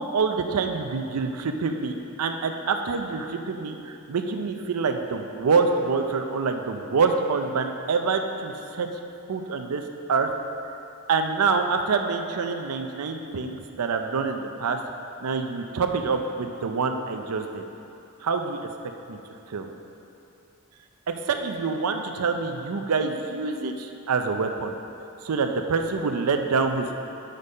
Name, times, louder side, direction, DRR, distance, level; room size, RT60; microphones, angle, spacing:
voice 1, 0.0-8.9 9.3-9.8 10.1-10.3 11.1-14.8 15.2-17.6 18.2-18.7 19.1-19.2 19.5-19.7 21.1-24.7 25.2-27.0, right 4 dB, 80° right, 5 dB, 0.5 m, -26 dB
8.2 x 5.3 x 5.3 m, 2.8 s
head